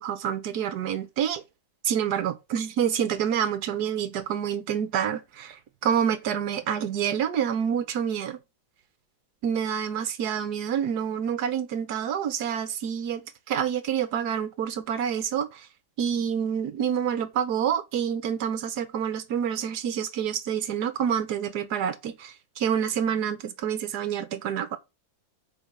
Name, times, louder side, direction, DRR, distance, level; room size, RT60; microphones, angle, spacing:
voice 1, 0.0-1.4 1.8-8.4 9.4-15.7 16.0-24.8, right 8 dB, 60° right, 1.4 m, -28 dB
6.4 x 4.5 x 5.4 m
omnidirectional pair, 2.1 m